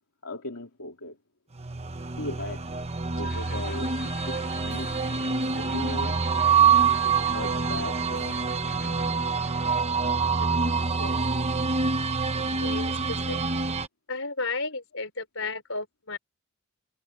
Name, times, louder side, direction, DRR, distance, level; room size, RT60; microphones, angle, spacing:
voice 1, 0.2-1.2 2.2-2.7 3.2-5.0 5.6-6.2 7.0-8.3, left 2 dB, 85° left, 2.5 m, -38 dB
sound 1, 1.5-13.9, right 5 dB, 30° right, 1.0 m, -26 dB
sound 2, 3.2-9.8, left 6 dB, 45° left, 4.5 m, -46 dB
voice 2, 12.6-13.4 14.1-16.2, left 3 dB, 65° left, 4.4 m, -34 dB
head